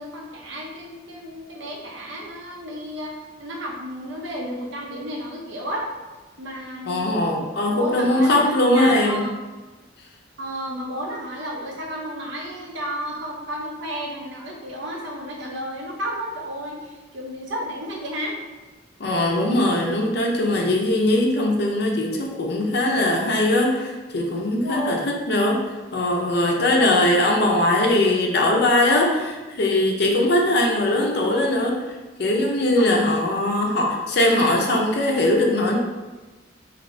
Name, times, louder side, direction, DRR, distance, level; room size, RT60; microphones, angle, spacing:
voice 1, 0.0-3.1 3.4-5.9 6.4-7.1 7.7-9.4 10.4-18.4 24.6-25.1 26.5-27.0 32.8-33.1, equal, 65° right, -1 dB, 0.6 m, -32 dB
voice 2, 6.9-9.2 19.0-31.9 32.2-35.8, left 1 dB, 55° left, 0 dB, 0.5 m, -20 dB
2.8 x 2.6 x 3.1 m, 1.2 s
head